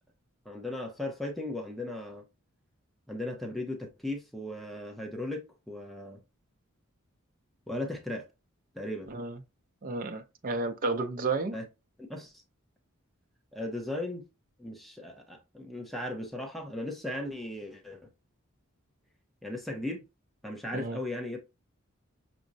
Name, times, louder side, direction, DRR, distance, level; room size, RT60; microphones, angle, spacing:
voice 1, 0.4-2.2 3.1-6.2 7.7-8.3 8.7-9.1 11.5-11.7 12.1-12.4 13.5-14.3 14.6-18.0 19.4-20.0 20.4-21.4, left 1 dB, ahead, 0.7 m, -37 dB
voice 2, 9.8-11.5 20.7-21.0, right 3 dB, 40° right, 0.5 m, -32 dB
6.0 x 2.1 x 2.6 m
head